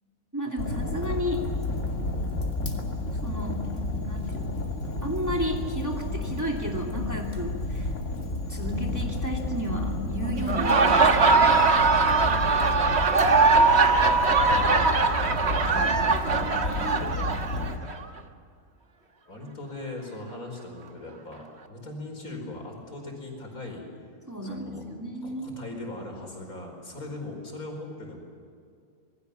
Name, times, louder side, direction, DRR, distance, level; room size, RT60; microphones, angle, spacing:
voice 1, 0.3-1.4 3.2-3.7 4.0-4.6 5.0-7.9 8.5-11.6 15.7-17.1 24.3-25.5, equal, 10° right, 0 dB, 2.8 m, -33 dB
Fire, 0.6-17.8, left 2 dB, 55° left, 2.7 m, -31 dB
Laughter, 10.4-18.0, right 4 dB, 50° right, 1.6 m, -21 dB
voice 2, 12.1-12.8 16.2-16.3 19.3-23.9 24.4-28.2, left 2 dB, 80° left, 2 dB, 5.4 m, -40 dB
26.5 x 21.0 x 7.1 m, 2.3 s
omnidirectional pair, 1.5 m